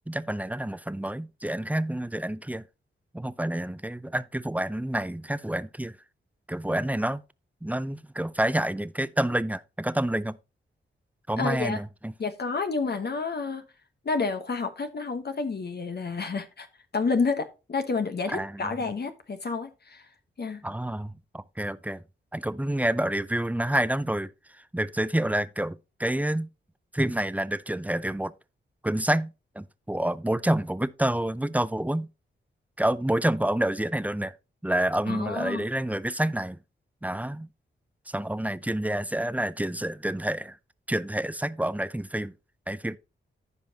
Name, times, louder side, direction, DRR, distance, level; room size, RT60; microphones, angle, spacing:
voice 1, 0.1-2.6 3.1-6.0 6.5-7.2 7.6-10.4 11.3-12.1 18.3-18.9 20.6-22.0 22.3-26.5 26.9-28.3 28.8-32.1 32.8-34.3 34.6-36.6 37.0-37.5 38.1-40.6 40.9-42.3 42.7-43.0, right 1 dB, 5° right, 0.5 m, -28 dB
voice 2, 11.4-11.8 12.2-13.6 14.0-16.7 16.9-20.1 20.4-20.6 35.1-35.6, left 4 dB, 50° left, 1.1 m, -29 dB
15.0 x 5.3 x 2.8 m
cardioid pair, 60°, 21 cm